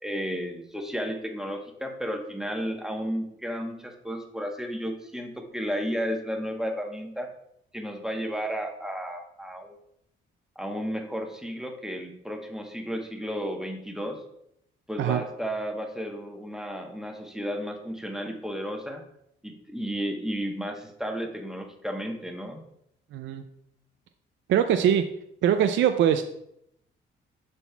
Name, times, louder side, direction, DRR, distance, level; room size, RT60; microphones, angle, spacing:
voice 1, 0.0-7.3 7.7-9.7 10.6-14.2 14.9-19.0 19.4-22.6, equal, 5° right, 3 dB, 1.0 m, -33 dB
voice 2, 23.1-23.4 24.5-25.0 25.4-26.2, right 9 dB, 70° right, 8 dB, 0.5 m, -22 dB
11.5 x 4.1 x 2.3 m, 0.76 s
cardioid pair, 90°, 20 cm